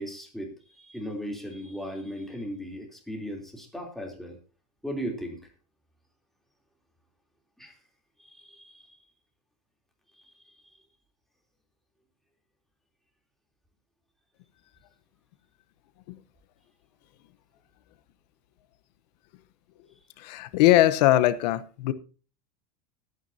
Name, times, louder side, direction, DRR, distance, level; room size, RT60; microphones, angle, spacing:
voice 1, 0.0-4.4 4.8-5.4 7.6-7.7 8.2-9.0 10.2-10.8, equal, ahead, 1 dB, 3.3 m, -37 dB
voice 2, 20.2-21.9, left 14 dB, 75° left, 13 dB, 1.0 m, -21 dB
20.5 x 9.4 x 2.8 m, 0.37 s
supercardioid pair, 145°, 21 cm